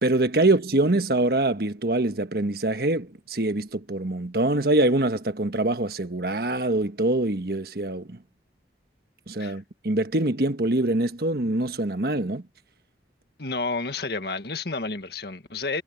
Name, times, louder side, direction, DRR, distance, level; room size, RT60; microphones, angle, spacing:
voice 1, 0.0-8.2 9.3-12.4, right 2 dB, 55° right, 1.4 m, -24 dB
voice 2, 13.4-15.8, left 3 dB, 60° left, 1.7 m, -30 dB
head